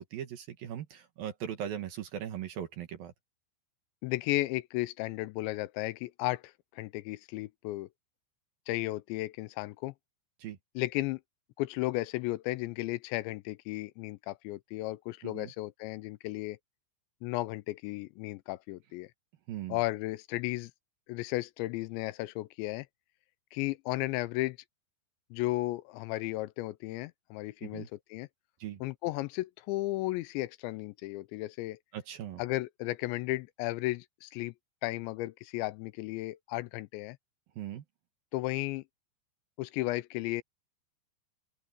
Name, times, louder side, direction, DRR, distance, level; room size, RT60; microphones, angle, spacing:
voice 1, 0.0-3.1 10.4-10.6 15.2-15.5 19.5-19.8 27.6-27.9 28.6-28.8 31.9-32.4 37.6-37.8, right 10 dB, 60° right, 2.8 m, -39 dB
voice 2, 4.0-7.9 8.7-9.9 10.8-11.2 11.6-16.6 17.2-19.1 19.7-20.7 21.1-22.9 23.5-24.6 25.3-28.3 28.8-31.8 32.4-34.5 34.8-37.2 38.3-38.8 39.6-40.4, left 19 dB, 85° left, 2.8 m, -34 dB
open air
omnidirectional pair, 5.3 m